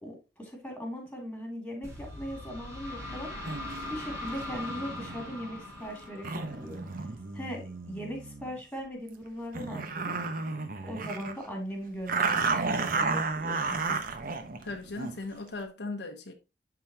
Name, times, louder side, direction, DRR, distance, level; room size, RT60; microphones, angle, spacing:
voice 1, 0.0-3.3 3.9-6.9 7.3-10.2 10.8-14.0, equal, 5° left, 2.6 m, -39 dB
sound 1, 1.8-7.5, left 1 dB, 15° right, 4.0 m, -41 dB
sound 2, 3.4-3.8 4.4-8.6 9.1-9.2 9.5-11.5 12.1-15.2, right 4 dB, 50° right, 1.0 m, -33 dB
voice 2, 14.6-16.3, left 3 dB, 65° left, 0.9 m, -38 dB
11.5 x 3.9 x 2.8 m
head